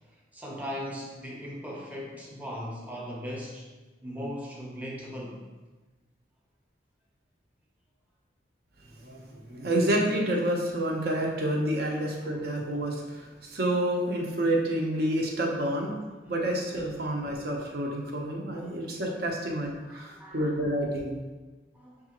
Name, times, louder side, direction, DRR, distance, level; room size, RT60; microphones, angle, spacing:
voice 1, 0.3-3.7 4.0-5.4 11.9-12.0 18.6-18.8 19.9-20.5 21.7-21.9, equal, 10° right, -4 dB, 0.7 m, -38 dB
voice 2, 9.0-15.9 16.3-21.1, right 1 dB, 55° right, -1 dB, 0.7 m, -29 dB
6.7 x 2.4 x 2.9 m, 1.3 s
head